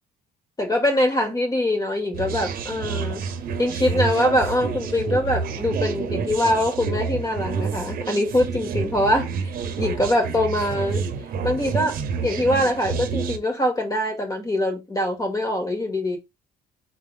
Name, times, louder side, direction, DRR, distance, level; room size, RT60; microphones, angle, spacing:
voice 1, 0.6-3.2 3.6-9.5 9.8-11.0 11.4-16.2, left 1 dB, 20° left, 1.8 m, -23 dB
voices in head, 2.1-13.4, right 5 dB, 60° right, 0.9 m, -29 dB
4.1 x 3.7 x 3.3 m
cardioid pair, 110°, 17 cm